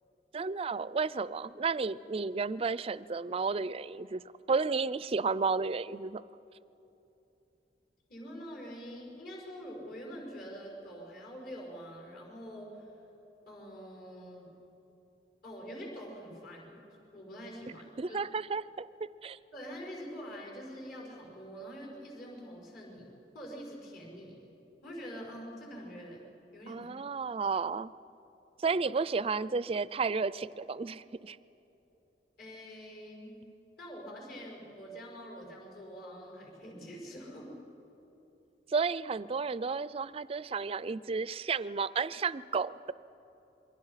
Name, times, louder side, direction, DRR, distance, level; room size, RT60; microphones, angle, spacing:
voice 1, 0.3-4.2 4.5-6.2 18.0-19.4 26.7-27.9 28.6-31.4 38.7-42.9, right 4 dB, 35° right, 17 dB, 0.4 m, -32 dB
voice 2, 8.1-13.0 13.5-14.5 15.4-16.8 17.1-18.2 19.5-24.3 24.8-26.2 26.5-26.9 32.4-33.4 33.8-37.5, equal, 60° left, -1 dB, 6.1 m, -45 dB
27.5 x 23.0 x 5.7 m, 3.0 s
head